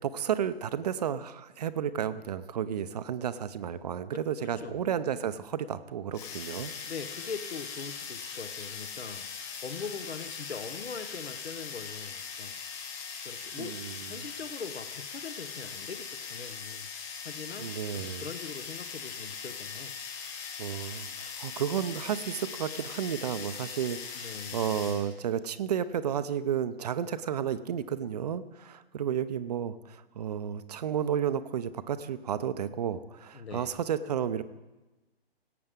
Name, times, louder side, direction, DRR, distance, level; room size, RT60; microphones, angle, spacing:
voice 1, 0.0-6.7 13.5-13.9 17.6-18.2 20.6-34.4, right 9 dB, 40° right, 13 dB, 0.5 m, -32 dB
voice 2, 4.1-4.9 6.8-9.3 9.6-12.5 13.2-16.9 17.2-20.0 24.2-24.7 33.3-33.8, left 5 dB, 80° left, 11 dB, 1.1 m, -42 dB
sound 1, 6.1-25.1, left 6 dB, 30° left, 1.7 m, -40 dB
17.5 x 8.5 x 3.6 m, 1.1 s
figure-of-eight pair, 135°, 31 cm